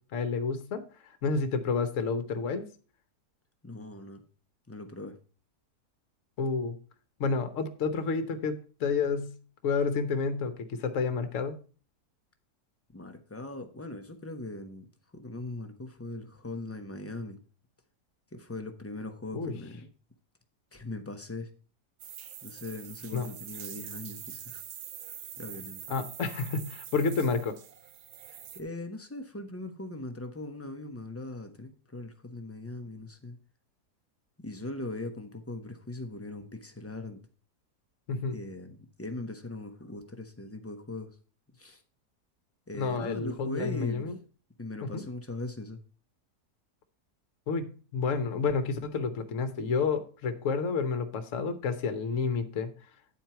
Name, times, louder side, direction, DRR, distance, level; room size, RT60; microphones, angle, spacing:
voice 1, 0.1-0.8 1.2-2.7 6.4-6.8 7.2-9.3 9.6-11.6 19.3-19.6 23.1-23.3 25.9-27.6 38.1-38.4 42.8-44.1 44.8-45.0 47.5-52.7, left 4 dB, 55° left, 9 dB, 1.2 m, -30 dB
voice 2, 3.6-4.2 4.7-5.2 12.9-14.9 15.1-17.4 18.3-19.9 20.7-21.5 22.4-24.6 25.4-25.8 28.3-33.4 34.4-37.2 38.3-41.1 41.6-41.8 42.7-44.1 44.6-45.8, left 2 dB, 15° left, 6 dB, 0.5 m, -40 dB
sound 1, 22.0-28.6, right 9 dB, 70° right, 1.3 m, -44 dB
9.7 x 4.5 x 5.6 m, 0.38 s
omnidirectional pair, 1.7 m